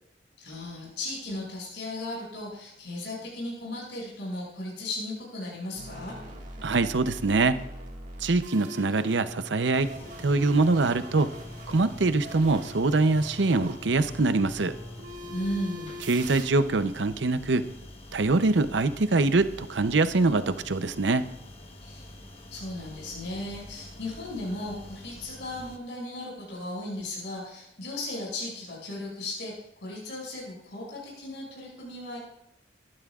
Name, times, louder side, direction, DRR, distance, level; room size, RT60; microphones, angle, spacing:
voice 1, 0.4-6.1 15.3-16.0 21.8-22.0 22.5-29.5 29.8-32.2, left 1 dB, 70° left, -4 dB, 6.2 m, -36 dB
sound 1, 5.8-16.4, equal, 40° right, 1.8 m, -42 dB
voice 2, 6.6-7.6 8.2-11.3 11.7-14.7 16.1-17.6 18.1-21.3, right 3 dB, 75° right, 11 dB, 0.7 m, -24 dB
sound 2, 9.7-25.8, left 1 dB, 30° left, 1.1 m, -47 dB
21.5 x 12.0 x 2.4 m, 0.81 s
head